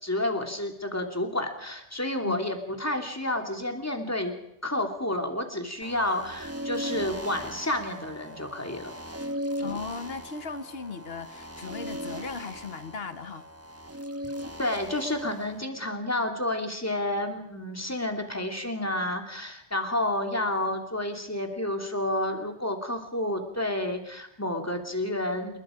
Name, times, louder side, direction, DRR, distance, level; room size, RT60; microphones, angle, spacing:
voice 1, 0.0-4.3 4.6-8.9 14.6-25.6, left 1 dB, 15° left, 2.7 m, -30 dB
sound 1, 5.8-15.6, equal, 15° right, 1.1 m, -38 dB
voice 2, 9.6-13.5, left 5 dB, 60° left, 1.4 m, -37 dB
28.5 x 22.0 x 5.0 m
omnidirectional pair, 1.2 m